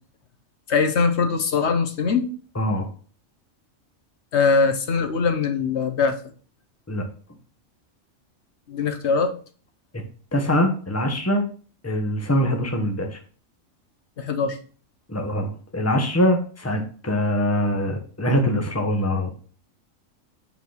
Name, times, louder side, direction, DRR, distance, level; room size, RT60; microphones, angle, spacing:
voice 1, 0.7-2.3 4.3-6.2 8.7-9.3 14.2-14.6, left 4 dB, 60° left, 8 dB, 1.1 m, -21 dB
voice 2, 2.6-2.9 6.9-7.0 10.3-11.4 11.8-13.2 15.1-19.3, equal, 10° left, 3 dB, 1.1 m, -23 dB
5.9 x 4.8 x 5.7 m, 0.40 s
omnidirectional pair, 1.4 m